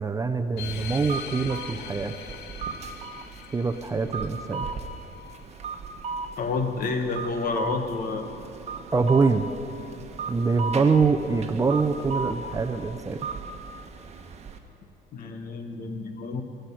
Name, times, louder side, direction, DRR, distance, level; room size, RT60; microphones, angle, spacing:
voice 1, 0.0-2.1 3.5-4.7 8.9-9.5 10.3-13.3, right 4 dB, 20° right, 8 dB, 0.6 m, -24 dB
sound 1, 0.5-5.6, left 8 dB, 75° left, 0.8 m, -41 dB
sound 2, 0.7-14.6, right 4 dB, 40° right, 1.1 m, -37 dB
voice 2, 6.4-8.2 15.1-16.4, left 4 dB, 55° left, 6 dB, 1.4 m, -29 dB
13.0 x 7.9 x 10.0 m, 2.7 s
cardioid pair, 110°, 17 cm